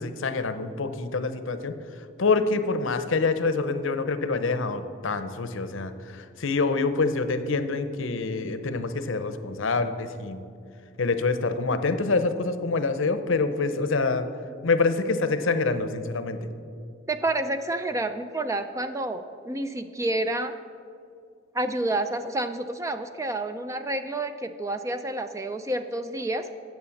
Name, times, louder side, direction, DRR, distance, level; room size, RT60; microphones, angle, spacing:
voice 1, 0.0-1.8 2.2-10.4 11.0-14.3 14.6-16.5, left 3 dB, 65° left, 10 dB, 0.7 m, -26 dB
voice 2, 17.1-20.5 21.5-26.5, right 2 dB, 15° right, 9 dB, 0.4 m, -29 dB
9.6 x 8.0 x 7.1 m, 2.5 s
head